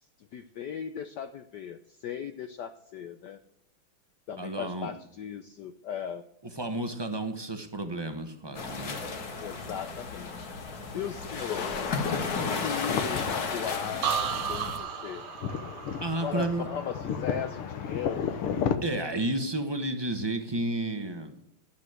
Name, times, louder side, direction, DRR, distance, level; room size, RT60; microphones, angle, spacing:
voice 1, 0.2-3.4 4.3-6.2 9.4-10.5 10.9-11.7 12.4-15.2 16.2-18.3, left 8 dB, 70° left, 10 dB, 1.0 m, -37 dB
voice 2, 4.4-4.9 6.6-9.0 10.6-10.8 16.0-16.7 18.8-21.4, right 1 dB, 20° right, 7 dB, 0.6 m, -32 dB
sound 1, 8.5-14.8, left 4 dB, 45° left, 2.0 m, -34 dB
sound 2, 11.6-18.8, left 7 dB, 90° left, 2.0 m, -34 dB
sound 3, 14.0-17.8 18.2-18.7, right 8 dB, 75° right, 0.8 m, -35 dB
12.0 x 8.4 x 7.9 m, 0.78 s
omnidirectional pair, 2.4 m